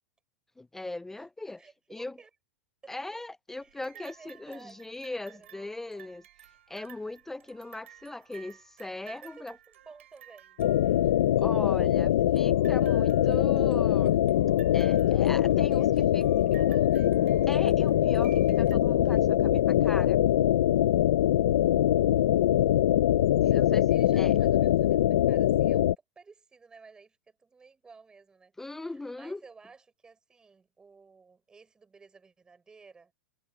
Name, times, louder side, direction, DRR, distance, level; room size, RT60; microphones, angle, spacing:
voice 1, 0.6-1.6 1.9-2.2 2.9-6.2 6.7-9.5 11.4-14.2 14.7-16.6 17.5-20.2 23.5-23.8 24.2-24.3 28.6-29.4, left 2 dB, 5° left, 0.3 m, -39 dB
voice 2, 1.1-2.3 2.8-2.9 3.5-4.8 5.1-5.7 9.0-10.8 15.7-16.1 16.4-17.2 23.4-23.6 23.9-33.1, right 4 dB, 10° right, 5.4 m, -55 dB
sound 1, 3.6-11.5 12.4-18.8, right 11 dB, 85° right, 6.2 m, -55 dB
sound 2, 10.6-25.9, left 12 dB, 80° left, 0.6 m, -23 dB
supercardioid pair, 150°, 7 cm